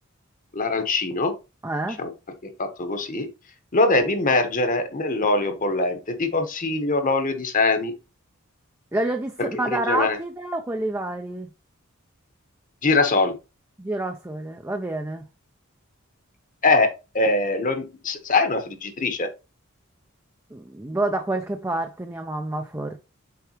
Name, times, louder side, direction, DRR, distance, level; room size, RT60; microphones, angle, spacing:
voice 1, 0.5-1.4 2.0-2.1 2.4-3.3 3.7-7.9 9.4-10.2 12.8-13.4 16.6-16.9 17.1-19.3, left 3 dB, 40° left, 1.2 m, -22 dB
voice 2, 1.6-2.0 8.9-11.5 13.8-15.3 20.5-23.0, right 2 dB, 10° right, 0.5 m, -28 dB
6.9 x 4.6 x 3.0 m
head